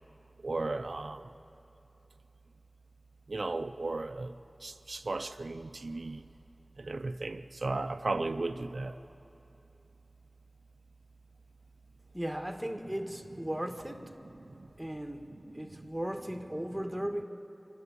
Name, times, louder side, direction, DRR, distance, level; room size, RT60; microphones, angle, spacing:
voice 1, 0.4-1.3 3.3-4.4 4.6-6.2 6.8-9.0 14.5-14.7 15.6-15.9, right 2 dB, 85° right, 0.4 m, -35 dB
voice 2, 12.1-14.1 14.8-17.2, equal, 10° right, 1.4 m, -37 dB
27.5 x 12.0 x 8.2 m
wide cardioid pair, 60°, 0 cm